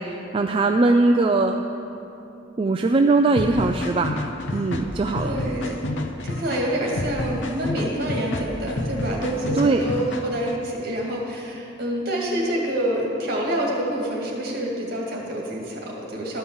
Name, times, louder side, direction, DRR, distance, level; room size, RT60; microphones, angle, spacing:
voice 1, 0.0-1.6 2.6-4.2 4.5-5.4 9.6-9.9, right 3 dB, 30° right, 4 dB, 0.3 m, -20 dB
sound 1, 3.4-10.6, left 1 dB, 75° left, 0.8 m, -29 dB
voice 2, 5.2-5.8 6.2-16.4, right 1 dB, 55° right, -2 dB, 2.1 m, -27 dB
12.5 x 5.6 x 7.0 m, 2.9 s
head